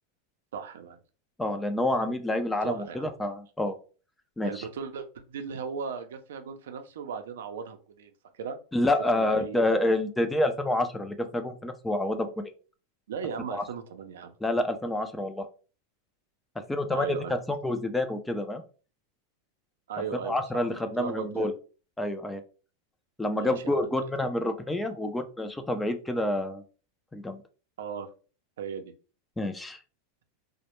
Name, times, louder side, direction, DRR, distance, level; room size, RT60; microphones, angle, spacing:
voice 1, 0.5-1.0 2.6-3.1 4.4-8.6 9.1-9.6 13.1-14.3 16.9-17.3 19.9-21.5 23.4-24.0 27.8-28.1 28.6-28.9, right 6 dB, 85° right, 7 dB, 0.4 m, -37 dB
voice 2, 1.4-3.8 4.4-4.7 8.7-12.5 13.5-13.6 14.4-15.5 16.7-18.6 20.2-21.5 22.0-22.4 23.2-26.6 27.1-27.4 29.4-29.8, left 1 dB, 5° left, 8 dB, 0.3 m, -28 dB
2.0 x 2.0 x 2.9 m, 0.36 s
supercardioid pair, 135°, 0 cm